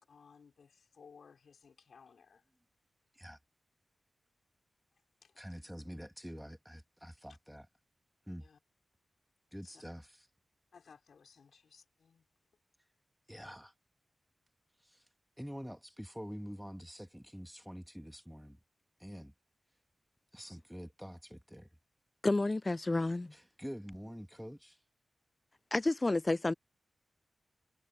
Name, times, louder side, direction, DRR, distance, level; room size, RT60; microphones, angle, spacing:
voice 1, 0.0-2.5 4.9-5.4 7.3-7.4 8.4-8.6 9.6-9.8 10.7-12.3, left 6 dB, 80° left, 5.1 m, -60 dB
voice 2, 5.4-7.7 8.3-8.4 9.5-10.1 13.3-13.7 14.9-15.0 15.4-18.6 19.0-19.3 20.3-21.7 23.3-24.8, equal, ahead, 2.1 m, -46 dB
voice 3, 22.2-23.3 25.7-26.5, left 2 dB, 30° left, 0.3 m, -30 dB
cardioid pair, 55°, 0 cm